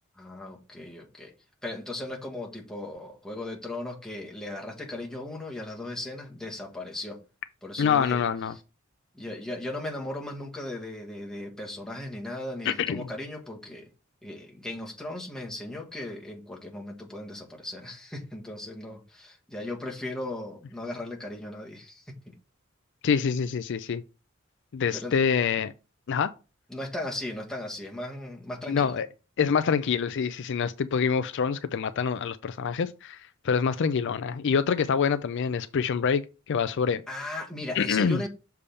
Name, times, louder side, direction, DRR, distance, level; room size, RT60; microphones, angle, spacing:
voice 1, 0.2-1.3 1.6-7.2 7.6-8.2 9.1-13.9 14.2-22.3 24.9-25.2 26.7-28.9 37.1-38.3, left 1 dB, 5° left, 1.5 m, -37 dB
voice 2, 7.8-8.5 12.7-13.1 23.0-24.0 24.7-25.7 26.1-26.3 28.7-29.1 29.4-37.0 37.7-38.3, left 6 dB, 60° left, 0.4 m, -26 dB
6.9 x 3.4 x 5.4 m
head